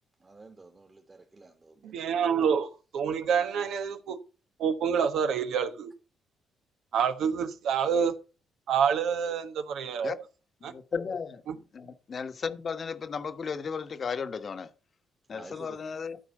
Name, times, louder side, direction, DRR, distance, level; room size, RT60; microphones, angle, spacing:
voice 1, 0.2-1.9 15.3-15.8, right 3 dB, 25° right, 1.7 m, -50 dB
voice 2, 1.8-4.2 4.6-5.9 6.9-8.1 8.7-10.2 10.6-10.7 11.5-11.6, right 7 dB, 75° right, 1.2 m, -27 dB
voice 3, 10.6-11.4 11.7-14.7 15.3-16.2, left 5 dB, 45° left, 1.2 m, -35 dB
12.5 x 4.4 x 6.6 m
cardioid pair, 90°, 0 cm